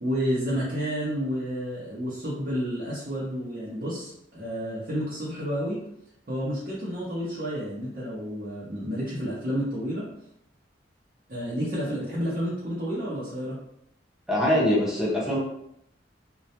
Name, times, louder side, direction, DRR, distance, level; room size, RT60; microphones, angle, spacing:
voice 1, 0.0-5.8 6.3-10.1 11.3-13.6, equal, 50° right, -9 dB, 0.7 m, -30 dB
voice 2, 14.3-15.4, left 1 dB, ahead, -5 dB, 0.6 m, -23 dB
2.2 x 2.1 x 2.7 m, 0.76 s
head